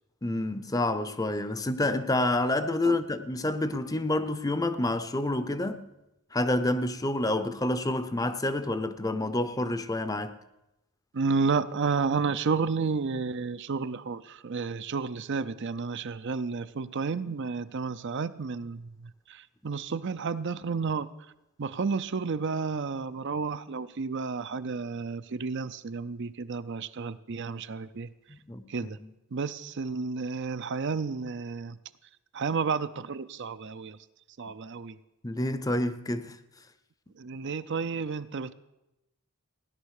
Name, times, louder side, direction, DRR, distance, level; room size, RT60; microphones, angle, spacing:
voice 1, 0.2-5.8 6.3-10.4 28.3-28.9 35.2-36.4, left 1 dB, 15° left, 0.6 m, -28 dB
voice 2, 11.1-21.1 21.6-28.1 28.7-29.0 29.3-31.8 32.3-34.0 34.4-35.0 37.2-38.5, right 4 dB, 50° right, 0.5 m, -31 dB
16.5 x 10.5 x 6.5 m
head